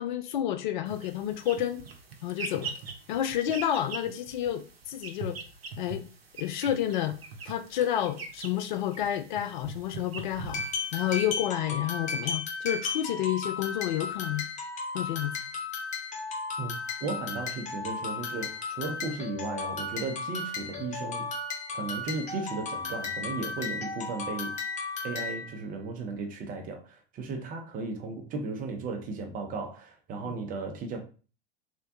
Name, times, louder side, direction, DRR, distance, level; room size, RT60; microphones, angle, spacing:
voice 1, 0.0-1.8 2.2-2.8 3.1-5.4 5.8-6.0 6.4-7.2 7.5-10.6 10.9-14.4 14.9-15.4 30.2-30.3, left 11 dB, 50° left, 0.4 m, -30 dB
sound 1, 0.9-11.3, right 4 dB, 80° right, 0.7 m, -42 dB
sound 2, 10.5-25.5, left 4 dB, 25° left, 0.9 m, -35 dB
voice 2, 17.0-21.3 21.7-24.7 25.0-31.0, right 4 dB, 30° right, 0.6 m, -35 dB
3.4 x 2.2 x 2.7 m
figure-of-eight pair, 85°, 30 cm